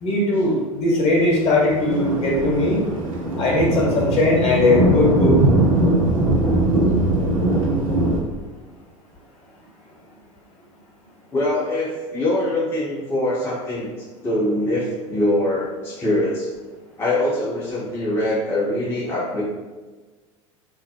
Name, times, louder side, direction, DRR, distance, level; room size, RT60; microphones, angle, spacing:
voice 1, 0.0-2.8 3.4-5.4, left 2 dB, 40° left, -3 dB, 0.8 m, -19 dB
Thunder, 1.3-8.2, right 1 dB, 85° right, 0.5 m, -20 dB
voice 2, 11.3-13.9 14.2-16.5 17.0-19.4, left 1 dB, 15° left, -6 dB, 0.5 m, -23 dB
2.6 x 2.0 x 2.6 m, 1.3 s
figure-of-eight pair, 80°, 17 cm